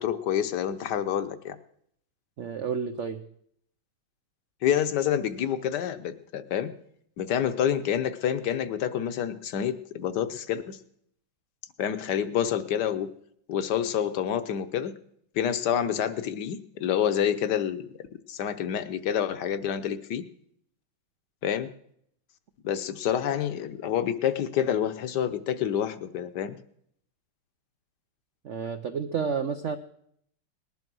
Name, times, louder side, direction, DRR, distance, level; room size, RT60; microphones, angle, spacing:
voice 1, 0.0-1.6 4.6-6.7 7.2-10.8 11.8-13.1 13.5-14.9 15.3-17.9 18.3-20.2 21.4-21.7 22.6-26.6, left 9 dB, 65° left, 12 dB, 1.4 m, -28 dB
voice 2, 2.4-3.3 28.4-29.8, right 6 dB, 70° right, 9 dB, 0.7 m, -30 dB
19.0 x 11.0 x 6.2 m, 0.70 s
omnidirectional pair, 2.2 m